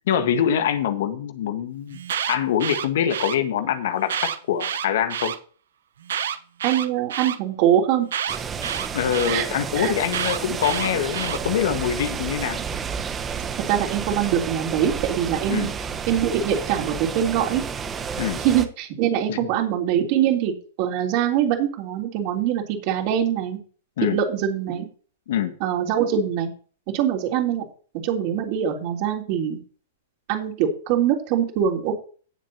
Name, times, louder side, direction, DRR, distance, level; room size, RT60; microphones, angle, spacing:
voice 1, 0.1-2.0 2.3-5.3 8.9-12.6 15.5-15.7 18.2-18.4 19.3-19.5 24.0-24.2 25.3-25.5, left 9 dB, 65° left, 9 dB, 1.6 m, -24 dB
Alarm, 1.9-3.4 4.0-5.4 6.0-7.4 8.1-9.4 10.1-11.4, right 9 dB, 75° right, 1.1 m, -28 dB
voice 2, 6.6-8.1 8.4-8.5 9.3-9.5 9.8-9.9 13.7-15.7 16.1-17.6 18.4-23.6 24.1-24.9 25.6-26.5 26.9-27.6 27.9-29.6 30.3-32.0, right 9 dB, 50° right, 1 dB, 3.7 m, -23 dB
sound 1, 8.3-18.7, right 6 dB, 20° right, 1.2 m, -31 dB
18.5 x 7.6 x 2.9 m, 0.40 s
hypercardioid pair, 115°, 0 cm